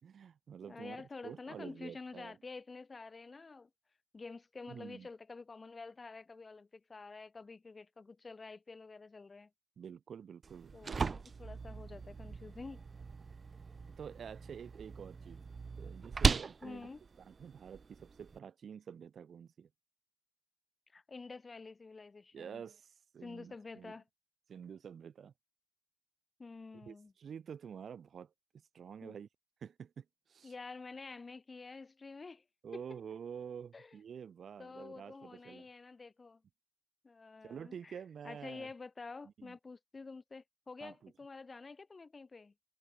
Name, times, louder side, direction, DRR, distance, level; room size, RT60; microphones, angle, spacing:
voice 1, 0.0-2.3 4.7-5.1 9.8-11.0 14.0-15.4 15.8-16.9 17.2-19.7 22.3-23.9 24.5-25.3 26.8-28.3 28.7-29.3 29.6-30.5 32.6-35.7 37.4-38.7 39.4-39.6 40.8-41.1, right 7 dB, 50° right, 3.3 m, -48 dB
voice 2, 0.7-3.7 4.1-9.5 10.7-12.8 16.6-17.0 20.9-22.6 23.2-24.0 26.4-27.1 29.0-29.2 30.4-32.4 32.7-32.8 33.7-34.0 34.6-36.4 37.0-42.5, left 4 dB, 25° left, 3.8 m, -49 dB
sound 1, 10.4-18.4, right 5 dB, 35° right, 1.2 m, -38 dB
cardioid pair, 95°, 0 cm